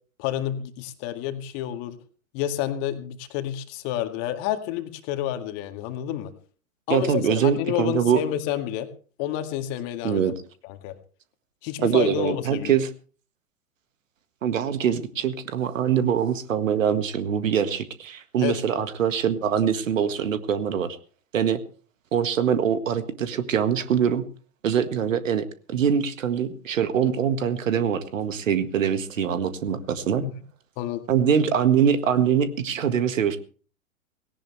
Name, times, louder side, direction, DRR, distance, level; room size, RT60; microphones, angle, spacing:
voice 1, 0.2-2.0 2.3-6.3 6.9-8.9 9.2-10.3 10.6-10.9 11.6-12.8 18.4-18.6 30.2-30.3 30.8-31.0, left 12 dB, 35° left, 8 dB, 2.0 m, -29 dB
voice 2, 6.9-8.2 10.0-10.3 11.8-12.9 14.4-21.0 21.3-21.6 22.1-24.2 24.6-30.2 31.1-33.4, right 8 dB, 60° right, 11 dB, 1.8 m, -23 dB
18.0 x 17.5 x 3.3 m, 0.40 s
figure-of-eight pair, 105°, 43 cm